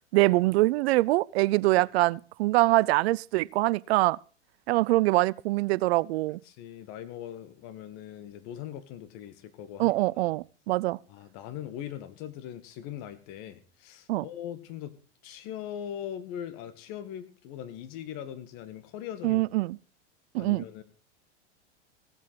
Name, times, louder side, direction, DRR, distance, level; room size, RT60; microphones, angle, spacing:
voice 1, 0.1-4.2 4.7-6.4 9.8-11.0 14.1-14.2 19.2-19.8 20.3-20.6, right 19 dB, 60° right, 0.6 m, -24 dB
voice 2, 6.5-9.9 11.1-14.9 15.2-19.5 20.4-20.8, left 10 dB, 50° left, 2.2 m, -40 dB
16.5 x 8.3 x 5.8 m
hypercardioid pair, 105°, 35 cm